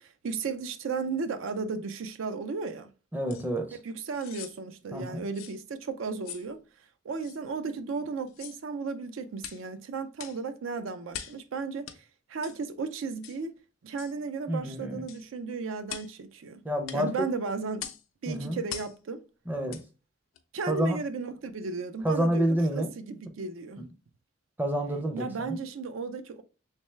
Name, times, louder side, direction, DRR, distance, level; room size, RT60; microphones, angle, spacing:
voice 1, 0.0-2.9 3.7-6.6 7.0-11.9 12.3-13.5 13.8-16.6 16.9-17.9 18.2-19.2 20.5-23.8 25.1-26.4, right 4 dB, 80° right, 0.4 m, -34 dB
voice 2, 3.1-3.8 4.9-5.2 14.5-15.0 16.6-17.3 18.3-18.6 19.5-19.8 20.7-21.0 22.0-22.9 24.6-25.6, right 1 dB, 10° right, 0.4 m, -28 dB
sound 1, 3.3-3.5 4.1-4.6 5.3-5.6 6.2-6.5 7.2-7.4 8.3-8.6 9.4-9.6 10.2-10.4 11.1-11.4 11.9-12.0 12.4-12.6 13.2-13.4 14.0-14.2 15.1-15.2 15.9-16.1 16.9-17.0 17.8-18.0 18.7-19.0 19.7-19.9 20.3-20.4, left 10 dB, 90° left, 0.4 m, -42 dB
3.3 x 3.1 x 3.1 m
head